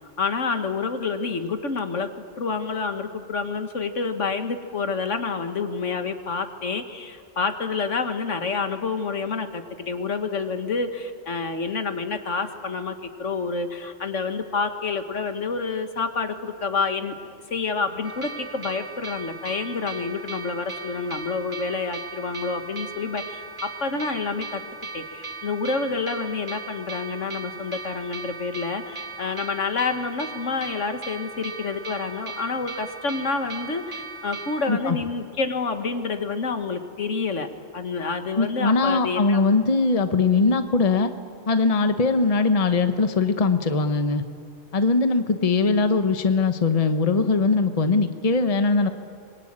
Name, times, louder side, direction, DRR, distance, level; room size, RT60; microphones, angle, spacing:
voice 1, 0.2-2.1 2.4-17.1 17.5-24.6 24.9-37.5 37.7-39.4 45.6-46.0, left 4 dB, 75° left, 8 dB, 1.9 m, -28 dB
sound 1, 18.0-34.7, right 3 dB, 45° right, 1.6 m, -38 dB
voice 2, 34.7-35.0 38.4-41.1 41.5-44.2 44.7-48.9, left 3 dB, 30° left, 9 dB, 1.1 m, -21 dB
25.5 x 22.5 x 8.8 m, 2.3 s
omnidirectional pair, 1.3 m